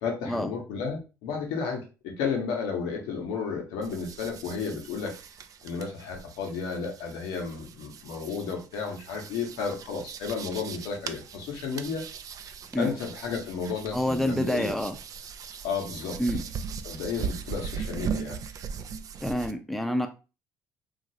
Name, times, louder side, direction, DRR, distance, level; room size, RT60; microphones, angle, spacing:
voice 1, 0.0-5.2 5.6-12.0 12.8-14.7 15.6-16.2 16.8-18.4, left 5 dB, 80° left, 2 dB, 0.9 m, -32 dB
sound 1, 3.8-19.5, right 6 dB, 50° right, 0.4 m, -39 dB
voice 2, 13.9-15.0 16.2-16.5 19.2-20.1, equal, ahead, 6 dB, 0.6 m, -27 dB
3.0 x 2.4 x 2.7 m, 0.31 s
supercardioid pair, 70°, 7 cm